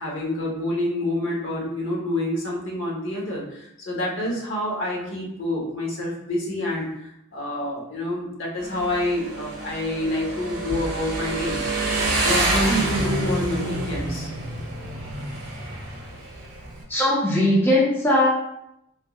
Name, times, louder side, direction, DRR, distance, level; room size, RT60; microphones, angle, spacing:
voice 1, 0.0-11.6 12.2-14.3, left 1 dB, 65° left, -3 dB, 0.9 m, -28 dB
Motorcycle, 8.6-16.8, right 2 dB, 50° right, 0.8 m, -27 dB
voice 2, 16.9-18.3, left 1 dB, 10° left, -6 dB, 0.5 m, -19 dB
3.4 x 2.9 x 2.3 m, 0.81 s
head